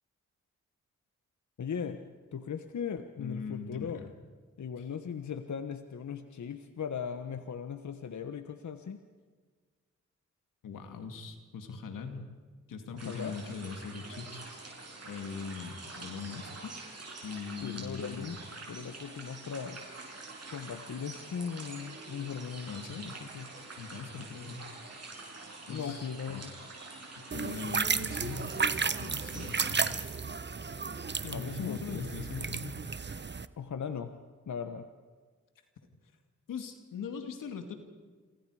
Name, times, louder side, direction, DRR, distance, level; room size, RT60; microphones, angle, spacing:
voice 1, 1.6-2.0 2.3-4.0 4.6-9.0 13.0-13.3 17.6-18.4 18.7-19.8 20.5-22.7 23.0-23.5 25.7-26.5 31.3-32.1 33.6-34.1 34.5-34.9, left 7 dB, 65° left, 8 dB, 1.3 m, -38 dB
voice 2, 3.2-4.1 4.8-4.9 10.6-12.2 12.7-14.4 15.1-16.7 17.2-18.4 22.7-23.1 23.8-24.6 25.7-26.4 27.2-28.5 29.0-30.0 31.2-32.8 36.5-37.7, left 5 dB, 90° left, 6 dB, 2.3 m, -41 dB
sound 1, 13.0-30.0, right 3 dB, 50° right, 8.0 m, -46 dB
sound 2, 27.3-33.5, right 5 dB, 35° right, 1.0 m, -33 dB
27.5 x 26.5 x 4.9 m, 1.5 s
cardioid pair, 45°, 32 cm